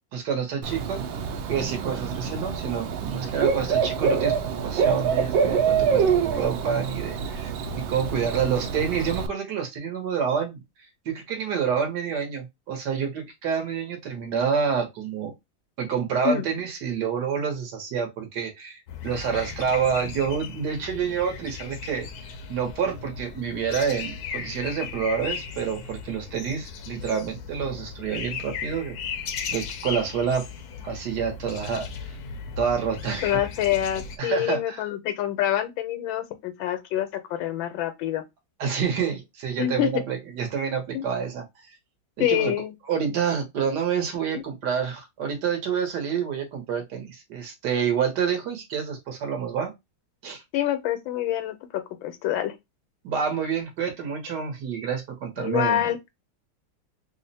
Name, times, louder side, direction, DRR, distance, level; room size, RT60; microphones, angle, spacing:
voice 1, 0.1-1.0 1.5-4.3 4.6-10.6 11.0-15.3 15.8-18.8 19.0-29.3 29.5-30.5 30.8-31.9 32.6-33.4 34.2-34.8 38.6-41.4 42.2-42.5 42.9-49.7 50.2-50.4 53.0-55.8, right 7 dB, 65° right, 1.5 m, -28 dB
Bird / Cricket, 0.6-9.3, right 6 dB, 90° right, 1.4 m, -26 dB
sound 1, 18.9-34.2, left 6 dB, 70° left, 0.9 m, -36 dB
voice 2, 33.2-38.2 39.6-39.9 40.9-41.0 42.2-42.7 44.3-44.4 50.5-52.5 55.4-56.0, left 12 dB, 85° left, 1.5 m, -26 dB
3.5 x 2.1 x 3.9 m
omnidirectional pair, 2.1 m